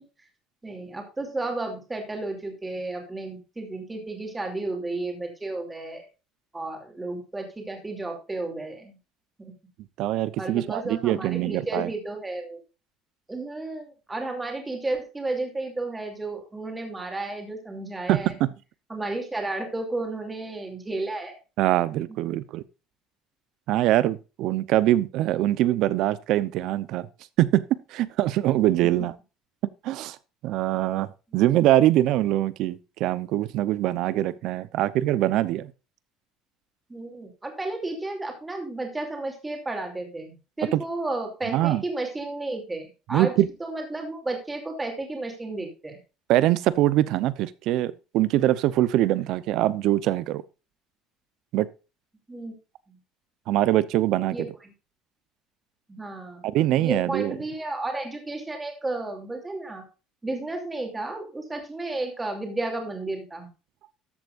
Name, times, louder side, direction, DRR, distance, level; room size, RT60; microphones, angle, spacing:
voice 1, 0.6-6.1 6.5-9.0 9.4-9.5 10.4-12.6 13.3-18.3 18.9-21.4 22.1-22.4 36.9-43.3 43.6-46.0 52.3-52.5 52.9-53.0 54.3-54.7 55.9-56.5 56.8-59.8 60.2-63.5, right 2 dB, 10° right, 2.8 m, -32 dB
voice 2, 10.0-11.9 18.1-18.5 21.6-22.6 23.7-27.1 27.4-29.1 29.8-30.2 30.4-31.1 31.3-35.7 40.7-40.8 41.5-41.8 43.1-43.5 46.3-50.4 51.5-51.7 53.5-54.4 56.4-57.3, right 14 dB, 55° right, 0.7 m, -23 dB
13.5 x 8.1 x 2.5 m
cardioid pair, 160°, 0 cm